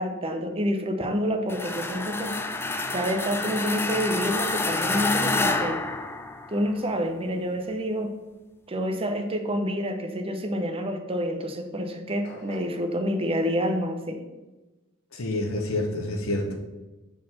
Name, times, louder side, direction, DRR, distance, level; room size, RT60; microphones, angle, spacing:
voice 1, 0.0-2.4 2.9-5.8 6.5-8.1 8.7-14.2, equal, 25° right, 6 dB, 0.7 m, -28 dB
sound 1, 1.5-6.7, left 3 dB, 10° left, 0.3 m, -28 dB
sound 2, 12.2-12.9, left 1 dB, 50° left, 1.4 m, -46 dB
voice 2, 15.1-16.5, left 1 dB, 70° left, 4 dB, 1.0 m, -28 dB
5.0 x 4.1 x 5.8 m, 1.1 s
head